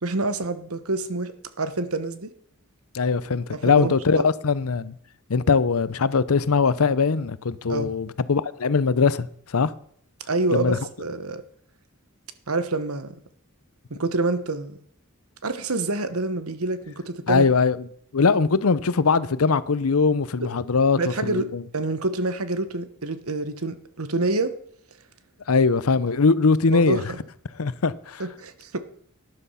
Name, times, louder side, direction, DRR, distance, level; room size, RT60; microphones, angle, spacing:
voice 1, 0.0-2.3 3.5-4.3 7.7-7.9 10.3-11.4 12.5-13.2 13.9-14.8 15.4-17.4 21.0-24.5 26.7-27.2 28.2-28.8, right 2 dB, 80° right, 1.3 m, -27 dB
voice 2, 2.9-4.9 5.3-9.7 10.5-10.8 17.3-17.9 18.1-21.6 25.5-27.0 27.6-28.2, left 4 dB, 80° left, 0.7 m, -21 dB
12.5 x 10.5 x 5.7 m
head